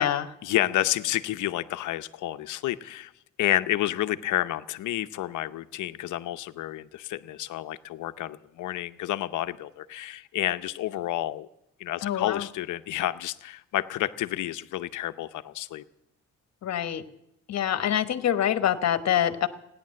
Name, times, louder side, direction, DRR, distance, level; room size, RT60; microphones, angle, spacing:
voice 1, 0.4-3.1 3.4-11.5 11.8-15.8, left 14 dB, 80° left, 11 dB, 0.8 m, -30 dB
voice 2, 12.0-12.5 16.6-17.0 17.5-19.5, left 10 dB, 60° left, 11 dB, 1.1 m, -25 dB
17.5 x 10.5 x 7.6 m, 0.84 s
cardioid pair, 90°, 30 cm